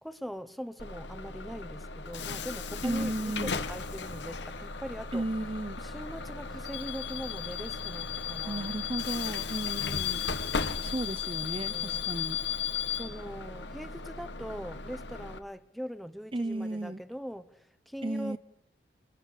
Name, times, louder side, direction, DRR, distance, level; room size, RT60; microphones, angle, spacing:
voice 1, 0.0-5.2 5.8-8.6 11.1-11.2 11.5-12.0 12.9-18.4, equal, ahead, 1.1 m, -41 dB
Bus / Alarm, 0.8-15.4, left 6 dB, 90° left, 2.0 m, -35 dB
voice 2, 2.8-3.6 5.1-5.8 8.4-10.3 10.8-12.4 16.3-17.0 18.0-18.4, right 1 dB, 30° right, 1.0 m, -34 dB
29.5 x 21.5 x 8.6 m
head